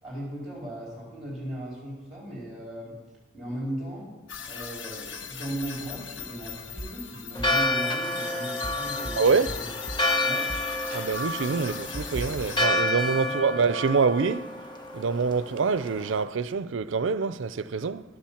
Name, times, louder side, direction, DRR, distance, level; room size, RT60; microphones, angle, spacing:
voice 1, 0.0-2.9 3.3-4.1 4.4-9.7 10.2-10.5 11.5-11.7 13.2-13.4, right 1 dB, ahead, 4.0 m, -37 dB
sound 1, 4.3-12.7, left 7 dB, 75° left, 0.8 m, -39 dB
sound 2, 6.8-6.9 7.2-7.7 8.0-8.3 8.6-8.8 9.0-10.1 10.5-11.1 11.3-13.4, right 1 dB, 30° right, 1.2 m, -39 dB
Church bell, 7.3-16.2, left 1 dB, 25° left, 0.9 m, -30 dB
voice 2, 9.2-9.6 10.9-14.5 14.9-18.0, right 5 dB, 80° right, 0.5 m, -25 dB
11.0 x 7.4 x 7.2 m
head